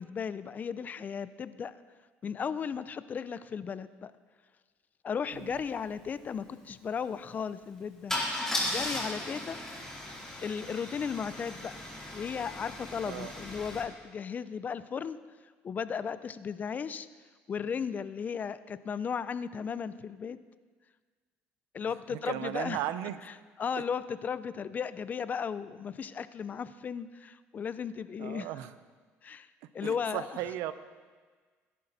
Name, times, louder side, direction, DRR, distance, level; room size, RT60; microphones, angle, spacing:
voice 1, 0.0-1.7 2.2-4.1 5.0-8.1 8.7-9.6 10.4-11.7 12.1-15.2 15.6-17.1 17.5-20.4 21.7-22.8 23.6-28.5 29.2-29.5 29.7-30.4, left 6 dB, 35° left, 14 dB, 0.5 m, -35 dB
Car / Engine starting / Idling, 5.5-5.6 5.8-6.1 8.1-13.8, left 1 dB, 10° left, 4.0 m, -36 dB
voice 2, 22.1-23.2 23.8-23.9 28.2-28.7 29.8-30.7, right 13 dB, 85° right, 12 dB, 0.7 m, -36 dB
17.5 x 11.0 x 4.1 m, 1.5 s
cardioid pair, 115°, 5 cm